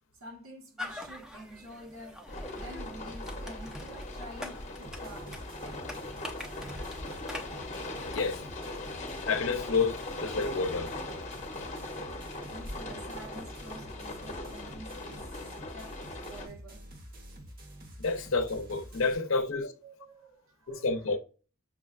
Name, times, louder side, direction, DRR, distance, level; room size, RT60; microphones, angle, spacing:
voice 1, 0.2-2.2 2.5-5.5 12.5-15.4 15.7-16.8 19.3-21.2, right 1 dB, 85° right, 1.1 m, -48 dB
sound 1, 0.8-8.5, left 1 dB, 5° right, 0.4 m, -45 dB
sound 2, 2.3-16.5, left 2 dB, 35° left, 0.7 m, -40 dB
sound 3, 4.8-19.1, equal, 45° right, 0.8 m, -48 dB
voice 2, 8.1-8.4 9.2-10.9 18.0-19.7 20.7-21.2, left 4 dB, 70° left, 0.5 m, -29 dB
5.9 x 2.2 x 2.3 m
head